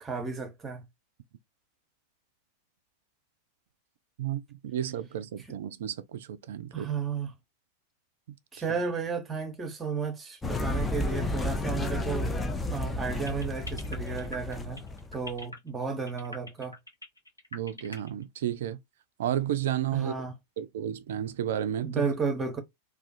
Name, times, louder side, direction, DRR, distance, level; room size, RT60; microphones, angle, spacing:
voice 1, 0.0-0.8 6.7-7.3 8.5-12.3 12.7-14.8 15.1-16.8 19.9-20.3 21.8-22.6, right 5 dB, 15° right, 0.8 m, -33 dB
voice 2, 4.2-6.9 17.5-18.8 19.2-20.3 20.6-22.1, right 11 dB, 60° right, 0.3 m, -32 dB
sound 1, 10.4-15.3, left 2 dB, 10° left, 0.4 m, -32 dB
sound 2, 13.3-18.2, left 2 dB, 85° left, 0.7 m, -42 dB
2.4 x 2.3 x 2.5 m
figure-of-eight pair, 90°, 0 cm